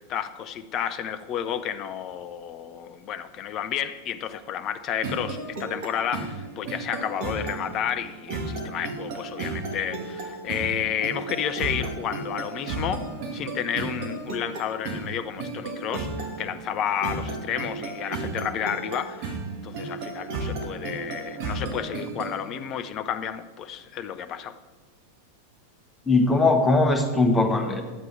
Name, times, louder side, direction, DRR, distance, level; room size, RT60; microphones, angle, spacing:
voice 1, 0.0-13.1 13.3-19.4 19.6-24.6, left 9 dB, 35° left, 0.5 m, -31 dB
sound 1, 5.0-22.5, right 3 dB, 45° right, 1.7 m, -34 dB
voice 2, 26.1-27.8, left 2 dB, 10° left, 1.2 m, -20 dB
11.0 x 7.7 x 4.5 m
figure-of-eight pair, 90°, 0 cm